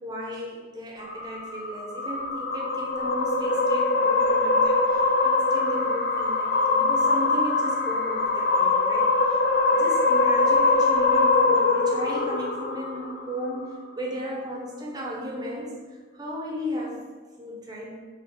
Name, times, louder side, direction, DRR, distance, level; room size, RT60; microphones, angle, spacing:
voice 1, 0.0-17.0 17.4-18.0, equal, 20° right, -2 dB, 0.7 m, -35 dB
sound 1, 1.0-13.5, left 3 dB, 55° left, 0.4 m, -23 dB
3.5 x 3.0 x 3.9 m, 1.4 s
head